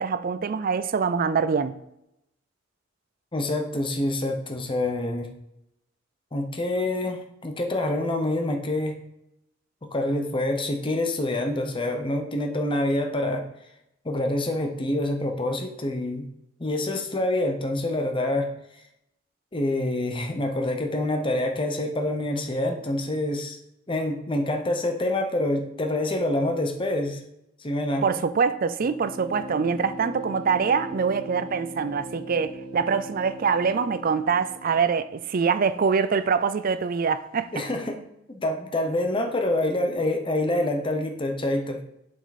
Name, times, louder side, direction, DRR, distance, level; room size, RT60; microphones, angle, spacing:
voice 1, 0.0-1.7 28.0-37.7, right 5 dB, 45° right, 13 dB, 0.4 m, -24 dB
voice 2, 3.3-5.3 6.3-9.0 9.9-13.4 14.0-16.3 16.6-18.5 19.5-23.6 23.9-27.2 27.6-28.1 37.5-38.0 38.3-41.8, left 1 dB, 25° left, 4 dB, 0.9 m, -26 dB
sound 1, 28.8-35.4, right 1 dB, 25° right, 2.9 m, -40 dB
7.7 x 5.1 x 4.1 m, 0.83 s
head